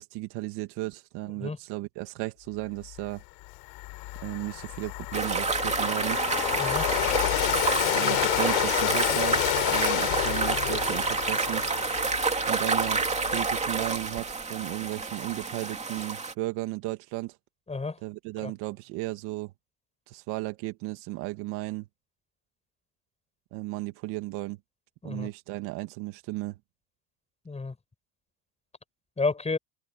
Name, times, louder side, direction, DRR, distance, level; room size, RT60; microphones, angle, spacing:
voice 1, 0.0-3.2 4.2-6.2 7.9-9.4 9.7-11.6 12.5-13.0 13.3-17.4 18.0-19.5 20.1-21.9 23.5-24.6 25.0-26.6, right 20 dB, 80° right, 2.1 m, -35 dB
Train, 3.0-3.1 3.5-13.9, left 25 dB, 85° left, 3.4 m, -30 dB
sound 1, 5.1-16.3, right 4 dB, 15° right, 2.7 m, -29 dB
voice 2, 6.6-6.9 17.7-18.0 18.4-18.5 25.0-25.3 27.4-27.8 29.2-29.6, left 3 dB, 15° left, 7.7 m, -30 dB
open air
cardioid pair, 130°, 39 cm